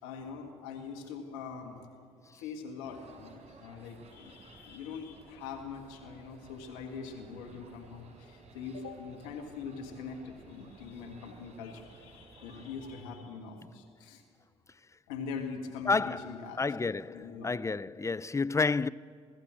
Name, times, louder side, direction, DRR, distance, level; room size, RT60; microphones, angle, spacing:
voice 1, 0.0-1.8 2.3-14.2 15.1-16.8 17.1-17.5, left 5 dB, 80° left, 1.9 m, -43 dB
sound 1, 2.8-13.0, right 4 dB, 40° right, 5.1 m, -56 dB
voice 2, 15.9-16.3 16.6-17.0 17.4-18.9, left 4 dB, 20° left, 0.5 m, -29 dB
24.0 x 15.0 x 7.7 m
hypercardioid pair, 50°, 16 cm